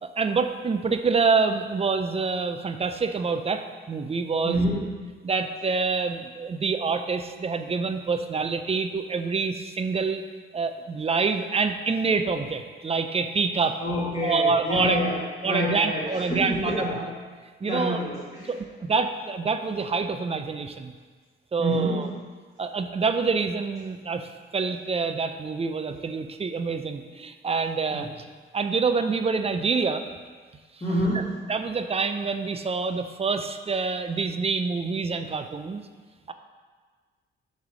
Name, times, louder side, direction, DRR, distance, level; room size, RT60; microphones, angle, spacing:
voice 1, 0.0-4.6 5.2-10.2 10.5-13.8 14.2-15.0 15.4-16.8 17.6-18.0 18.4-20.9 21.5-22.1 22.6-28.1 28.5-30.1 31.1-31.2 31.5-35.8 36.3-36.4, right 4 dB, 30° right, 8 dB, 0.5 m, -26 dB
voice 2, 4.4-4.9 13.8-15.2 15.4-17.0 17.6-18.5 21.6-22.0 27.9-28.1 30.8-31.3, equal, 30° left, -8 dB, 1.7 m, -27 dB
6.6 x 3.4 x 6.1 m, 1.5 s
cardioid pair, 85°, 21 cm